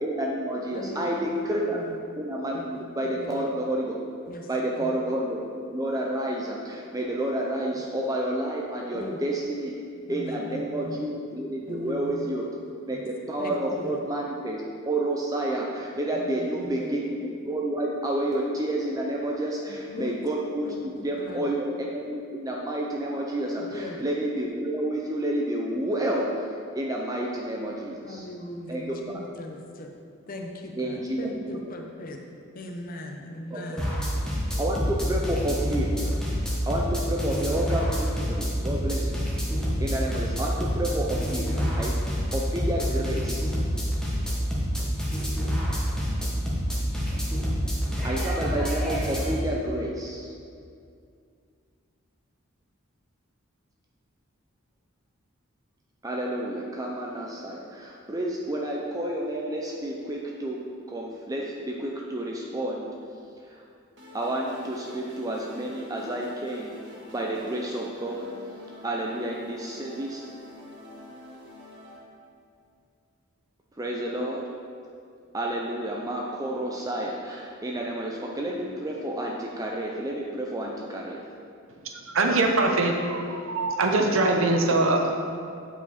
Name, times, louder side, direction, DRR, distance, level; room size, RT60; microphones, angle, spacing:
voice 1, 0.0-1.8 2.2-3.9 4.5-5.4 5.7-9.7 10.1-12.5 12.9-13.0 13.3-26.3 26.7-28.3 28.7-28.8 30.8-31.3 33.5-33.8 34.6-36.1 36.6-39.2 39.8-42.0 42.3-43.4 48.0-50.3 56.0-62.9 63.5-63.6 64.1-66.7 67.1-68.3 68.8-70.2 73.8-74.4 75.3-81.2 84.7-84.8, right 1 dB, 15° right, -2 dB, 0.5 m, -30 dB
voice 2, 0.7-2.0 2.5-2.7 3.1-3.4 4.3-4.9 8.9-9.2 10.1-11.0 11.7-12.3 12.9-13.0 13.4-14.0 16.1-16.9 19.9-20.1 20.6-21.5 23.6-24.0 28.0-29.9 30.3-32.2 32.5-33.9, left 1 dB, 40° left, 2 dB, 0.7 m, -39 dB
sound 1, 33.8-49.4, equal, 5° left, 1.1 m, -27 dB
sound 2, 64.0-72.0, left 1 dB, 55° right, 1.7 m, -46 dB
voice 3, 82.1-85.1, right 2 dB, 70° right, 2 dB, 0.8 m, -23 dB
9.2 x 4.9 x 4.1 m, 2.4 s
head